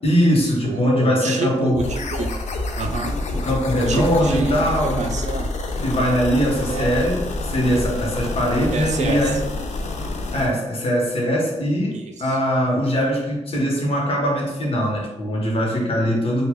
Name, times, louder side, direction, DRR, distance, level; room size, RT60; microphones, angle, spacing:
voice 1, 0.0-1.8 3.3-5.0 5.8-9.4 10.3-16.5, equal, 55° left, -2 dB, 0.9 m, -21 dB
voice 2, 0.6-2.3 2.8-3.1 3.7-5.5 6.6-7.1 8.7-9.4 11.9-12.4, right 3 dB, 85° right, 4 dB, 0.4 m, -28 dB
sound 1, 1.7-10.5, left 2 dB, 85° left, 0.4 m, -28 dB
3.0 x 2.3 x 3.5 m, 0.98 s
wide cardioid pair, 155°, 12 cm